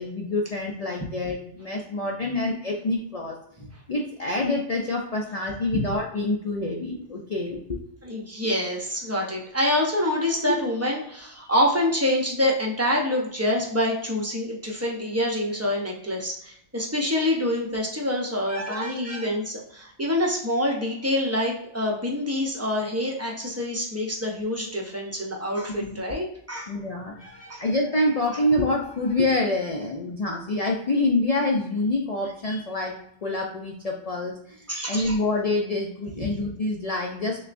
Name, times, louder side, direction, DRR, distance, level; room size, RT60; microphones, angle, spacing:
voice 1, 0.0-7.8 18.5-19.3 25.8-26.0 26.7-37.4, left 2 dB, 55° left, 0 dB, 0.4 m, -27 dB
voice 2, 8.0-26.7 27.5-27.6 32.4-32.6 34.7-35.2, left 1 dB, 15° right, -1 dB, 0.6 m, -26 dB
6.2 x 2.2 x 2.5 m, 0.71 s
omnidirectional pair, 1.3 m